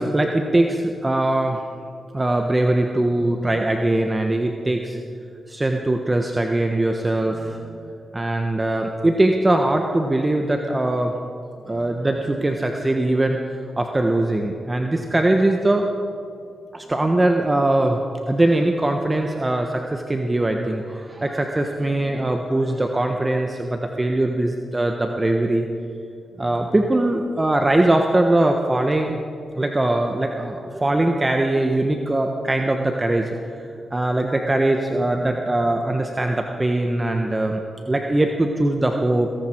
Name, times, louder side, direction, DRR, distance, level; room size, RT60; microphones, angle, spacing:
voice 1, 0.0-1.6 2.1-5.0 5.5-11.1 11.7-15.9 16.7-18.0 18.3-25.7 26.4-29.2 29.6-33.3 33.6-37.6 37.9-39.3, right 1 dB, 25° right, 3 dB, 1.2 m, -21 dB
18.5 x 17.5 x 4.6 m, 2.4 s
supercardioid pair, 45°, 0 cm